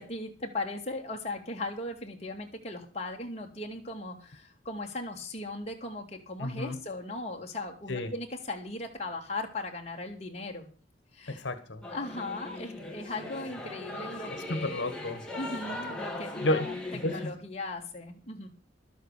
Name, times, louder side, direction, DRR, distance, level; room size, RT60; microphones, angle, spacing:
voice 1, 0.0-10.7 11.1-11.5 11.9-14.8 15.4-16.7 17.0-18.5, left 2 dB, 35° left, 1 dB, 2.2 m, -38 dB
voice 2, 6.4-6.8 7.9-8.1 11.3-11.8 14.3-15.2 16.4-16.7 17.0-17.2, left 1 dB, 80° left, 9 dB, 1.4 m, -31 dB
Singing / Musical instrument, 11.8-17.3, left 2 dB, 5° left, 2.2 m, -39 dB
12.0 x 7.7 x 6.7 m, 0.39 s
head